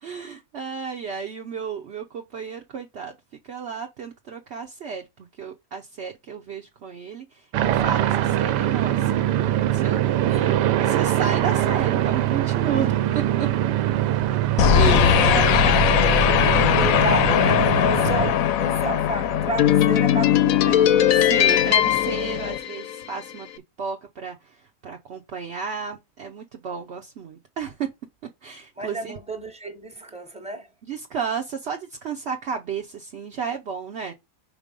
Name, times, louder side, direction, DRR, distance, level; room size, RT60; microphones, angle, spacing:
voice 1, 0.0-3.1 3.4-5.1 5.4-9.2 9.7-12.9 13.4-13.5 14.7-15.4 21.1-23.5 23.8-27.9 28.4-29.2 30.8-34.1, right 6 dB, 60° right, 0.7 m, -32 dB
sound 1, 7.5-18.3, right 12 dB, 80° right, 1.2 m, -23 dB
voice 2, 10.4-10.8 15.2-21.0 28.8-30.7, right 2 dB, 5° right, 0.8 m, -32 dB
sound 2, 14.6-23.1, left 10 dB, 70° left, 0.9 m, -19 dB
4.9 x 4.0 x 5.2 m
omnidirectional pair, 1.8 m